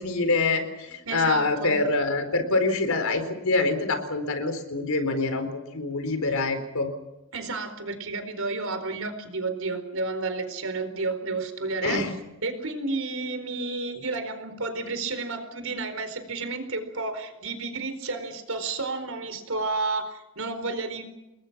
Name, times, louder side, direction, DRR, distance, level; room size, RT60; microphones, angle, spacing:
voice 1, 0.0-6.9 11.8-12.1, left 3 dB, 80° left, 8 dB, 4.4 m, -25 dB
voice 2, 1.1-1.8 7.3-12.0 12.4-21.0, right 3 dB, 75° right, 9 dB, 4.5 m, -31 dB
29.5 x 21.5 x 6.2 m, 0.98 s
head